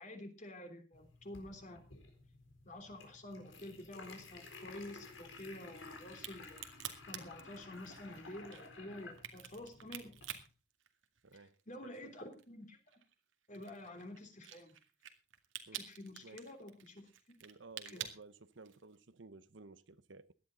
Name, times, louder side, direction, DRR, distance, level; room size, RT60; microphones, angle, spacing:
voice 1, 0.0-1.8 2.7-6.6 7.1-10.1 11.7-12.8 13.5-14.7 15.8-17.1 17.9-18.1, left 1 dB, 40° left, 3.3 m, -49 dB
sound 1, 0.9-10.4, left 3 dB, 85° left, 4.1 m, -54 dB
Crack, 6.1-11.6 11.9-19.0, right 10 dB, 90° right, 2.1 m, -48 dB
voice 2, 11.2-11.6 11.8-12.1 15.7-15.8 16.2-16.4 17.4-20.3, right 3 dB, 70° right, 0.9 m, -55 dB
17.5 x 12.0 x 4.0 m
head